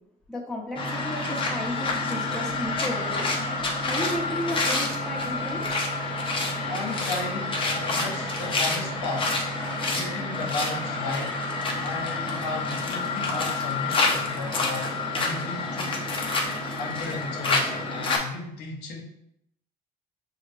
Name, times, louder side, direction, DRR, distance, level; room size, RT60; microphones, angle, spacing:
voice 1, 0.3-3.3 3.9-5.8, left 1 dB, 5° left, -4 dB, 1.1 m, -33 dB
sound 1, 0.8-18.2, left 3 dB, 30° left, 0.8 m, -28 dB
voice 2, 6.7-9.3 9.9-16.0 16.8-19.0, left 3 dB, 80° left, 0 dB, 0.9 m, -35 dB
5.7 x 2.4 x 3.2 m, 0.77 s
cardioid pair, 110°, 17 cm